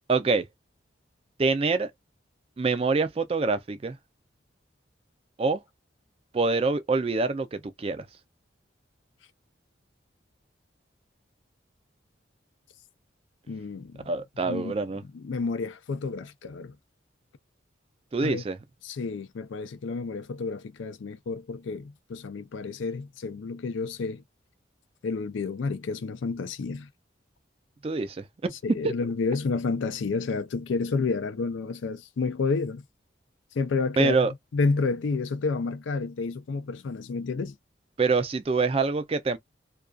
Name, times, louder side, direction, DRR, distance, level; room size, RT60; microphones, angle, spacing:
voice 1, 0.1-0.5 1.4-1.9 2.6-4.0 5.4-5.6 6.3-8.1 14.1-15.0 18.1-18.6 27.8-28.5 34.0-34.3 38.0-39.4, right 4 dB, 30° right, 0.3 m, -25 dB
voice 2, 13.5-14.1 14.4-14.8 15.1-16.8 18.2-18.4 18.8-24.2 25.0-26.9 28.6-32.8 33.5-37.5, left 4 dB, 80° left, 0.4 m, -30 dB
2.5 x 2.3 x 2.2 m
head